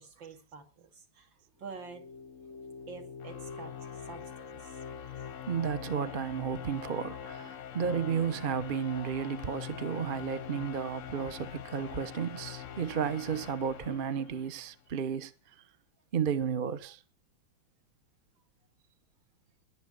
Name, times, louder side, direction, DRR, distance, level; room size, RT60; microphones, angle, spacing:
voice 1, 0.0-2.1 2.9-4.8 12.3-12.7 16.8-16.9, right 5 dB, 65° right, 3.1 m, -49 dB
sound 1, 1.6-14.8, left 8 dB, 55° left, 0.9 m, -44 dB
voice 2, 5.5-15.3 16.1-17.0, right 7 dB, 40° right, 0.7 m, -33 dB
20.5 x 8.0 x 6.6 m
omnidirectional pair, 2.2 m